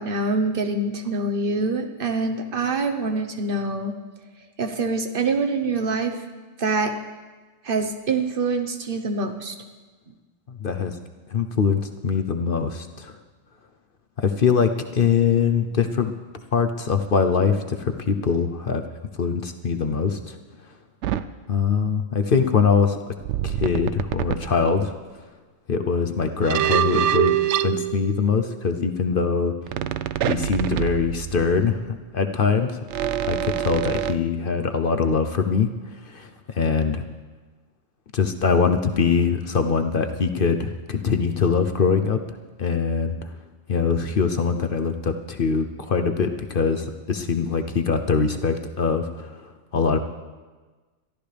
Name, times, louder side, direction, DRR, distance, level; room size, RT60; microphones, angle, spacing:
voice 1, 0.0-3.9 4.6-6.2 6.6-7.0 7.6-9.6 10.1-10.2, right 3 dB, 45° right, 6 dB, 1.2 m, -25 dB
voice 2, 10.5-11.0 11.3-13.1 14.2-16.1 16.5-18.8 19.2-20.4 21.5-23.0 23.4-24.9 25.7-29.5 30.3-32.8 33.2-35.7 36.0-37.0 38.1-42.2 42.6-43.3 43.7-50.0, left 5 dB, 50° left, 7 dB, 0.9 m, -23 dB
sound 1, 21.0-21.3 23.2-24.6 26.4-28.6 29.7-31.7 32.9-34.2, right 11 dB, 70° right, 0.8 m, -25 dB
22.0 x 14.0 x 3.4 m, 1.3 s
omnidirectional pair, 1.3 m